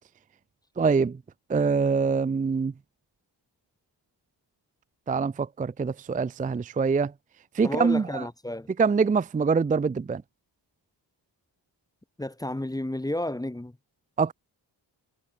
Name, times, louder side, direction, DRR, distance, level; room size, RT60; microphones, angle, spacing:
voice 1, 0.8-1.2 1.5-2.7 5.1-7.1 7.5-8.3 8.8-10.2 14.2-14.3, right 5 dB, 20° right, 0.4 m, -24 dB
voice 2, 7.6-8.7 12.2-13.8, left 1 dB, 10° left, 1.0 m, -31 dB
cardioid pair, 60°, 45 cm